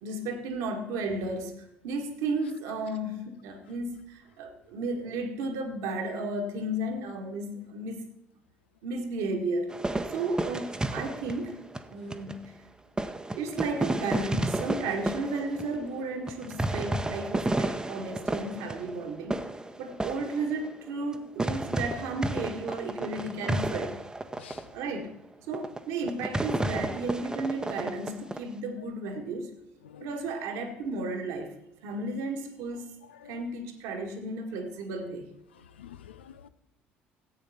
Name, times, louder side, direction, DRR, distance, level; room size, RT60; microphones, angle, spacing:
voice 1, 0.0-8.0 8.8-9.8 10.1-11.6 11.9-12.5 13.3-19.4 19.8-24.0 24.7-25.1 25.5-29.5 30.0-32.9 33.3-35.3, right 2 dB, 65° right, 4 dB, 1.8 m, -33 dB
sound 1, 9.7-12.5 13.0-21.1 21.4-24.6 25.1-25.2 25.5-25.8 26.1-28.4, right 2 dB, 10° right, 0.9 m, -32 dB
voice 2, 35.8-36.5, left 9 dB, 80° left, 13 dB, 0.5 m, -48 dB
14.5 x 8.7 x 4.3 m, 0.84 s
figure-of-eight pair, 55°, 6 cm